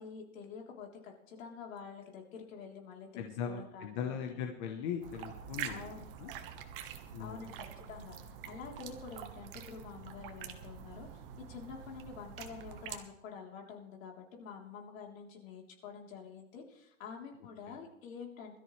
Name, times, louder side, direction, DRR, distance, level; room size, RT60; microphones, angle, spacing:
voice 1, 0.0-4.4 5.6-6.0 7.2-18.6, left 6 dB, 65° left, 0 dB, 3.7 m, -48 dB
voice 2, 3.1-5.8 6.2-6.3 7.1-7.4 17.7-17.8, left 7 dB, 35° left, 3 dB, 1.1 m, -39 dB
sound 1, 5.0-13.0, right 8 dB, 40° right, 1.4 m, -46 dB
21.5 x 13.5 x 3.3 m, 0.84 s
supercardioid pair, 170°, 42 cm